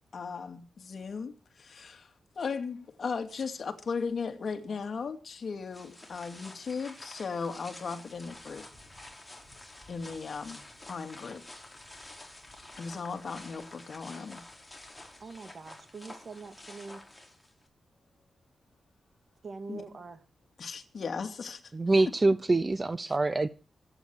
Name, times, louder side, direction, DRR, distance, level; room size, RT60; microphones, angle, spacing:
voice 1, 0.1-2.1 2.4-8.7 9.9-11.4 12.8-14.4 19.7-19.8 20.6-21.6 22.0-22.1, left 5 dB, 55° left, 2.5 m, -37 dB
sound 1, 5.7-17.7, left 1 dB, 10° left, 4.9 m, -49 dB
voice 2, 15.2-17.0 19.4-20.2 21.9-22.0, right 4 dB, 50° right, 2.4 m, -44 dB
voice 3, 21.7-23.5, right 2 dB, 25° right, 0.7 m, -25 dB
26.0 x 9.6 x 4.6 m
wide cardioid pair, 110°, 0 cm